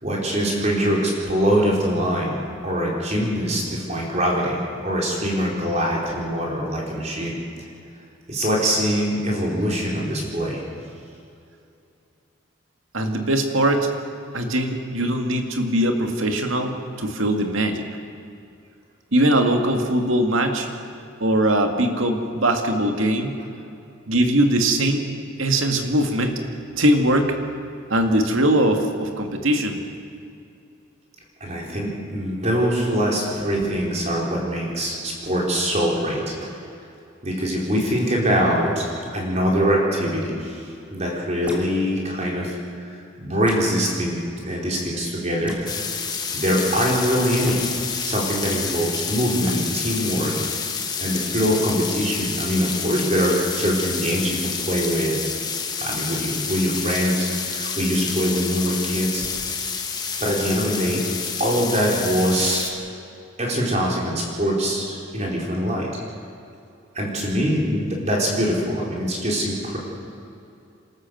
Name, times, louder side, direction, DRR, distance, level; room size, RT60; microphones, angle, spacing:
voice 1, 0.0-2.4 2.6-7.4 8.3-10.6 31.4-36.6 37.2-40.6 40.9-42.5 43.2-45.5 46.3-50.6 51.0-55.2 55.8-59.2 60.2-61.0 61.4-62.9 63.4-65.9 66.9-69.8, equal, 35° right, -2 dB, 4.5 m, -23 dB
voice 2, 12.9-13.9 14.3-17.8 19.1-20.7 21.2-23.3 24.1-25.1 25.4-26.4 26.8-27.3 27.9-29.8, right 1 dB, 75° right, 4 dB, 2.3 m, -21 dB
sound 1, 41.5-41.7 43.4-43.7 45.4-45.6 47.4-47.6 49.4-49.6 51.5-51.6, equal, 5° right, 2.7 m, -36 dB
sound 2, 45.7-62.7, left 5 dB, 20° left, 1.5 m, -29 dB
27.5 x 13.0 x 7.9 m, 2.6 s
head